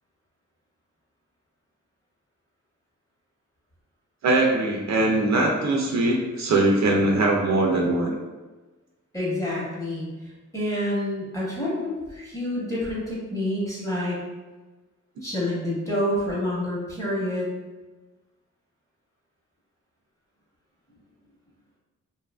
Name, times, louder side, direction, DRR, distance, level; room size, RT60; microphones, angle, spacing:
voice 1, 4.2-8.2, right 2 dB, 60° right, -1 dB, 0.4 m, -21 dB
voice 2, 9.1-14.2 15.2-17.5, left 1 dB, 10° left, -7 dB, 0.9 m, -28 dB
2.7 x 2.3 x 2.2 m, 1.2 s
wide cardioid pair, 115°, 31 cm